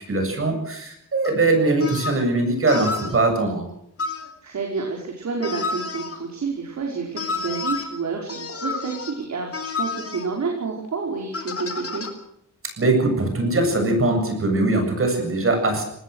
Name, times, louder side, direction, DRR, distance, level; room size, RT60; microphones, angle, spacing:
voice 1, 0.1-3.7 12.8-15.8, right 2 dB, 40° right, 4 dB, 7.8 m, -21 dB
sound 1, 1.2-1.3 1.8-2.2 2.7-3.2 4.0-4.3 5.4-6.2 7.2-7.8 8.3-9.2 9.5-10.3 11.3-12.1, left 4 dB, 45° left, 3.9 m, -30 dB
voice 2, 4.4-12.1, right 4 dB, 60° right, 0 dB, 5.3 m, -29 dB
25.0 x 19.0 x 6.5 m, 0.75 s
wide cardioid pair, 145°, 32 cm